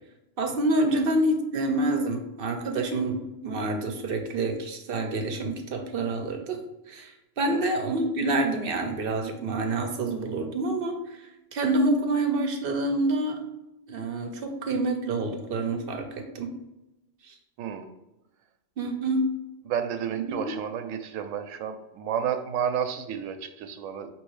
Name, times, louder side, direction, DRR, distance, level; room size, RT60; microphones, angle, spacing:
voice 1, 0.4-6.6 6.9-13.4 13.9-16.5 17.2-17.3 18.8-19.3 20.1-20.4, right 2 dB, 55° right, 4 dB, 0.7 m, -27 dB
voice 2, 17.6-17.9 19.7-24.1, right 8 dB, 85° right, 7 dB, 0.9 m, -31 dB
5.3 x 3.0 x 3.1 m, 0.97 s
omnidirectional pair, 1.3 m